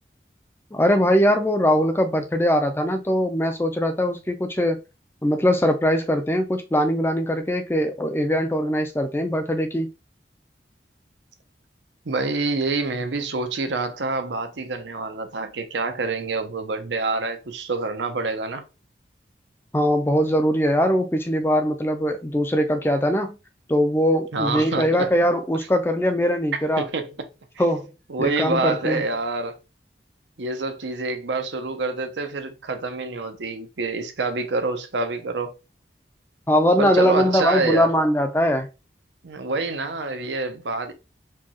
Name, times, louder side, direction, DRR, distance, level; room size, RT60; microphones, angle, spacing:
voice 1, 0.7-4.8 5.2-9.9 19.7-23.4 23.7-26.8 27.6-27.9 28.2-29.0 36.5-38.7, equal, 15° left, 0.4 m, -21 dB
voice 2, 12.0-18.6 24.3-25.1 26.8-27.3 28.1-29.6 30.4-35.5 36.8-37.9 39.2-40.9, right 3 dB, 85° right, 0.7 m, -27 dB
4.4 x 2.3 x 3.0 m
head